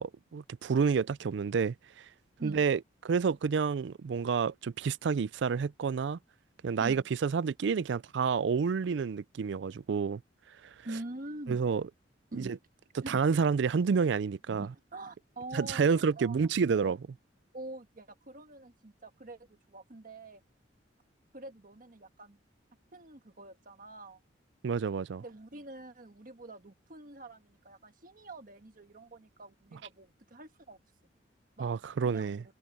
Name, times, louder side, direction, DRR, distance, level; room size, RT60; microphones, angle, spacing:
voice 1, 0.0-1.7 2.4-2.8 3.0-6.2 6.6-10.2 11.5-11.8 12.3-12.6 13.1-14.7 15.5-17.0 24.6-25.2 31.6-32.4, right 5 dB, 70° right, 0.4 m, -29 dB
voice 2, 2.4-2.7 6.8-7.1 10.8-11.8 12.3-12.5 13.0-13.2 14.5-16.9 17.5-20.4 21.3-22.4 22.9-24.2 25.2-30.8 31.6-31.7 32.0-32.3, right 2 dB, 50° right, 1.5 m, -46 dB
head